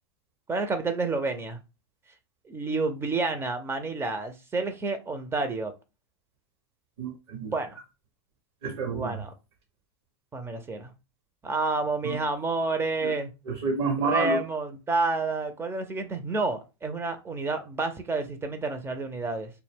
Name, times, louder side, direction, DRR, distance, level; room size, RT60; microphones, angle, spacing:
voice 1, 0.5-1.6 2.5-5.7 7.4-7.8 8.9-9.3 10.3-10.9 11.4-13.3 14.0-19.5, right 3 dB, 15° right, 0.5 m, -29 dB
voice 2, 7.0-7.5 8.6-9.1 12.0-12.1 13.0-13.1 13.5-14.4, right 4 dB, 70° right, 1.0 m, -28 dB
2.2 x 2.1 x 3.4 m
hypercardioid pair, 100°, 14 cm